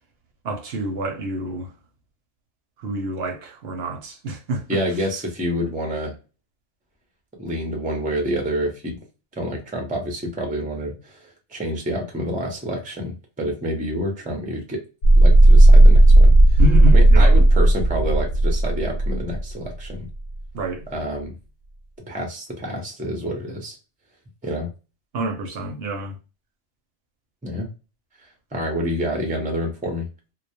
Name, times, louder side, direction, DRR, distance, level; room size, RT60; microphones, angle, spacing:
voice 1, 0.4-1.7 2.8-4.8 16.6-17.4 20.5-20.8 25.1-26.1, right 2 dB, 65° right, 0.7 m, -27 dB
voice 2, 4.7-6.1 7.4-9.0 9.4-14.8 15.2-16.6 16.9-20.1 20.9-21.3 22.1-23.8 24.4-24.7 27.4-27.7 28.5-30.1, equal, 10° right, 0.4 m, -28 dB
sound 1, 15.0-19.6, right 1 dB, 75° left, 0.9 m, -12 dB
2.2 x 2.0 x 2.8 m
omnidirectional pair, 1.2 m